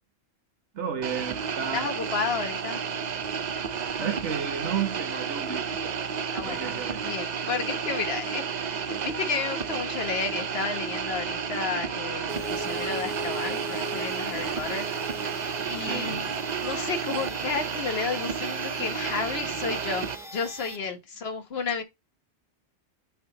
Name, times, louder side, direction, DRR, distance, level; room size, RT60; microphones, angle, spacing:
voice 1, 0.7-1.9 3.9-6.0 6.4-7.1 15.8-16.2, right 7 dB, 80° right, 1.4 m, -32 dB
sound 1, 1.0-20.2, right 6 dB, 50° right, 0.6 m, -32 dB
voice 2, 1.7-2.8 6.3-6.7 7.0-14.9 15.7-16.3 16.6-21.8, left 5 dB, 60° left, 1.4 m, -32 dB
sound 2, 12.3-20.8, right 1 dB, ahead, 1.2 m, -39 dB
8.7 x 3.5 x 3.9 m
omnidirectional pair, 1.2 m